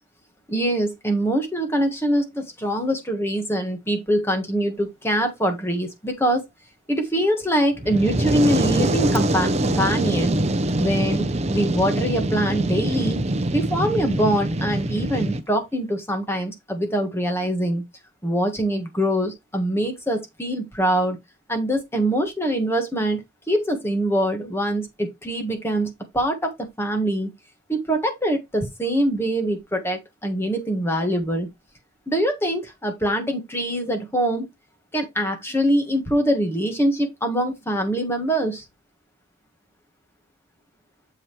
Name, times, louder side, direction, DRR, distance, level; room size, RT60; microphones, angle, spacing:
voice 1, 0.5-6.4 6.9-10.4 10.8-13.2 13.5-17.8 18.2-21.2 21.5-23.2 23.5-27.3 27.7-31.5 32.1-34.5 34.9-38.6, right 1 dB, 10° left, 1.5 m, -23 dB
Fire, 7.8-15.4, right 1 dB, 35° right, 0.7 m, -24 dB
7.3 x 5.0 x 3.2 m
head